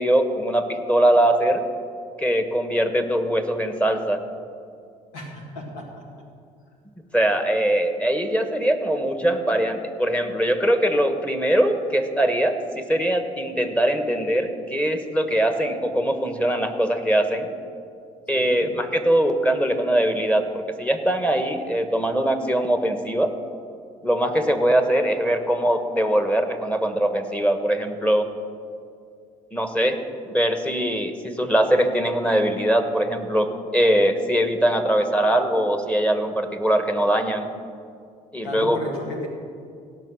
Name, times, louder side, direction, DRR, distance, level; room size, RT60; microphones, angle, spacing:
voice 1, 0.0-1.6 2.2-4.2 7.1-17.5 18.3-23.3 24.0-28.3 29.5-30.0 30.3-37.5 38.3-38.8, right 1 dB, 10° left, 7 dB, 1.4 m, -22 dB
voice 2, 5.1-6.0 18.3-18.7 38.4-39.3, left 1 dB, 90° left, 1 dB, 2.0 m, -34 dB
16.5 x 6.1 x 6.4 m, 2.3 s
hypercardioid pair, 60°, 16 cm